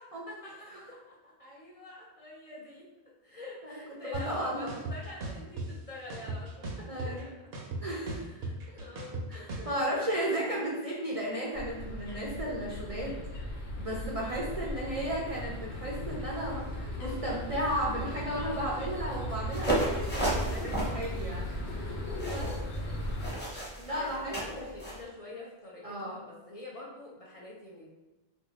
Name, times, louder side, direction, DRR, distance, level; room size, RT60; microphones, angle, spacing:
voice 1, 0.0-2.9 3.2-7.3 8.1-10.8 14.3-14.6 22.2-23.1 23.8-27.9, left 2 dB, 45° left, -5 dB, 0.5 m, -46 dB
voice 2, 4.1-4.7 6.9-7.3 7.8-8.2 8.7-8.8 9.3-13.2 13.8-21.5 21.7-22.8 23.8-24.7 25.8-26.2, right 1 dB, 45° right, -4 dB, 0.5 m, -34 dB
sound 1, 4.1-4.2 4.7-5.7 6.1-7.2 7.5-9.7, right 2 dB, 75° right, 0.9 m, -36 dB
sound 2, 11.5-23.3, left 1 dB, 75° left, 1.0 m, -37 dB
sound 3, 19.5-25.0, right 1 dB, 10° left, 0.8 m, -34 dB
2.6 x 2.3 x 3.9 m, 1.1 s
omnidirectional pair, 1.1 m